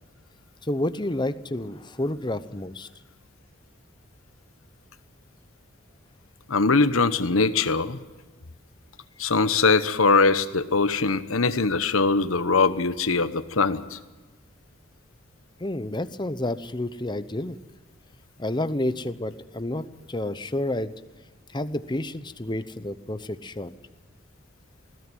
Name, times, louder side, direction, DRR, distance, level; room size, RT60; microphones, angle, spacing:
voice 1, 0.6-2.9 15.6-17.6 18.4-20.9 21.5-23.7, left 1 dB, 20° left, 12 dB, 0.8 m, -30 dB
voice 2, 6.5-8.0 9.2-14.0, left 4 dB, 85° left, 12 dB, 1.2 m, -22 dB
20.0 x 16.5 x 9.2 m, 1.3 s
head